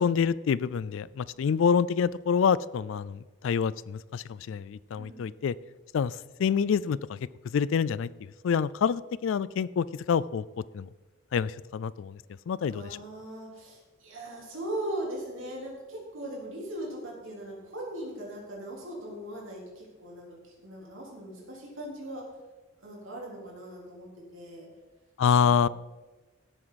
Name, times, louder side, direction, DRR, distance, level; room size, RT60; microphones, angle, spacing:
voice 1, 0.0-5.5 5.9-7.2 7.5-8.1 8.4-10.4 10.7-10.9 11.3-12.2 12.5-13.0 25.2-25.7, left 7 dB, 65° left, 20 dB, 0.3 m, -27 dB
voice 2, 4.9-5.3 12.7-22.2 22.8-24.7 25.3-25.7, right 1 dB, 65° right, -3 dB, 3.9 m, -39 dB
17.0 x 7.8 x 4.1 m, 1.2 s
head